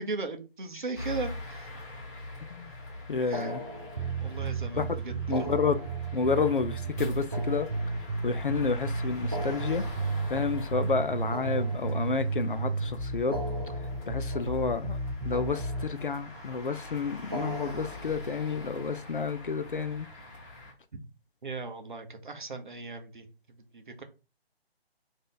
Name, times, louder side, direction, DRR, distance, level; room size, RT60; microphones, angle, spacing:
voice 1, 0.0-1.7 3.3-3.5 4.2-5.5 14.4-14.6 20.9-21.0 21.4-24.0, right 3 dB, 50° right, 0.8 m, -38 dB
sound 1, 0.9-20.7, left 2 dB, 15° left, 0.9 m, -44 dB
voice 2, 3.1-3.6 4.8-4.9 5.3-5.8 6.1-7.7 8.2-9.9 10.3-13.4 14.1-15.0 15.2-20.1, left 5 dB, 55° left, 0.5 m, -30 dB
sound 2, 3.3-4.6 5.2-8.5 9.2-12.5 13.2-15.1 15.3-16.4 17.2-19.0, right 1 dB, 25° right, 0.4 m, -42 dB
sound 3, 4.0-15.9, right 3 dB, 75° right, 1.0 m, -33 dB
3.3 x 2.7 x 3.8 m
figure-of-eight pair, 150°, 31 cm